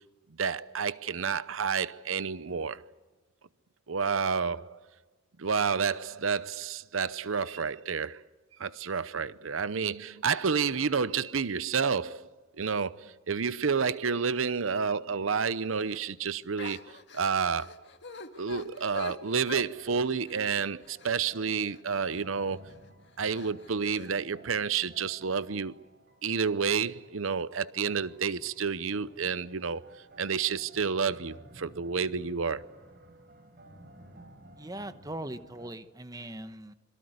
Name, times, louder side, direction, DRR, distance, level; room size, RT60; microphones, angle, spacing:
voice 1, 0.4-2.8 3.9-4.8 5.4-8.2 8.6-12.3 12.6-17.8 18.4-22.7 23.2-25.7 26.2-32.7, right 6 dB, 85° right, 0.8 m, -30 dB
sound 1, 15.7-16.0 16.6-22.2 22.7-22.9 23.3-24.1, left 3 dB, 60° left, 1.9 m, -45 dB
sound 2, 18.7-19.1 19.7-35.7, right 1 dB, 50° right, 4.0 m, -55 dB
voice 2, 34.6-36.7, right 1 dB, 20° right, 1.1 m, -40 dB
27.0 x 23.0 x 8.0 m
head